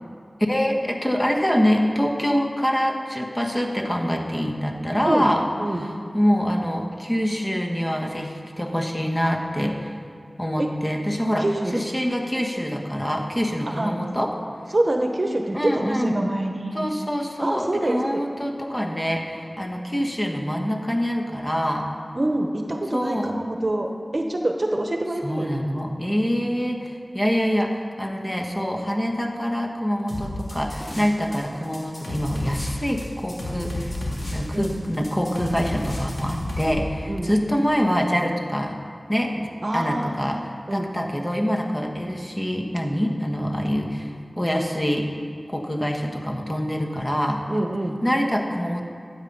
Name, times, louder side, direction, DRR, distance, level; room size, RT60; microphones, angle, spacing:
voice 1, 0.4-5.5 5.7-10.0 10.4-11.5 11.7-14.3 15.5-16.2 16.7-21.9 22.9-23.4 25.2-34.0 34.3-38.8 39.1-45.1 45.5-47.4 48.0-48.8, equal, 20° left, 1 dB, 1.3 m, -25 dB
voice 2, 5.6-5.9 10.6-10.7 11.4-11.8 13.7-14.0 14.7-16.8 17.4-18.2 22.1-25.5 34.5-34.7 37.1-37.4 39.6-40.9 47.5-48.0, right 1 dB, 45° right, 3 dB, 1.0 m, -26 dB
sound 1, 30.1-31.4 31.6-36.7, left 1 dB, 80° left, 2.8 m, -31 dB
12.0 x 8.4 x 5.5 m, 2.2 s
wide cardioid pair, 55°, 0 cm